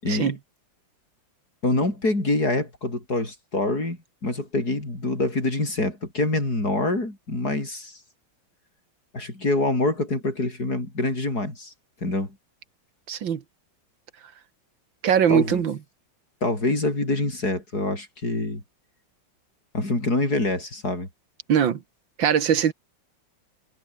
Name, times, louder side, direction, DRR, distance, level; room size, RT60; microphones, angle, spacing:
voice 1, 0.0-0.4 1.6-8.0 9.1-11.7 12.0-12.4 15.3-15.6 16.4-18.6 19.7-21.1, left 2 dB, 55° left, 7.3 m, -25 dB
voice 2, 13.1-13.4 15.0-15.8 21.5-21.8 22.2-22.7, right 8 dB, 85° right, 2.3 m, -21 dB
omnidirectional pair, 2.0 m